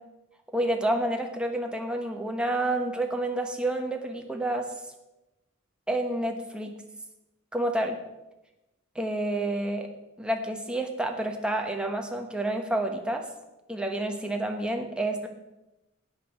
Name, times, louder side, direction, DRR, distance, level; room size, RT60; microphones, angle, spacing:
voice 1, 0.5-4.7 5.9-6.8 7.5-8.0 8.9-9.9 10.2-13.2 13.7-15.3, right 1 dB, 5° right, 3 dB, 1.1 m, -29 dB
13.0 x 8.7 x 4.4 m, 0.98 s
head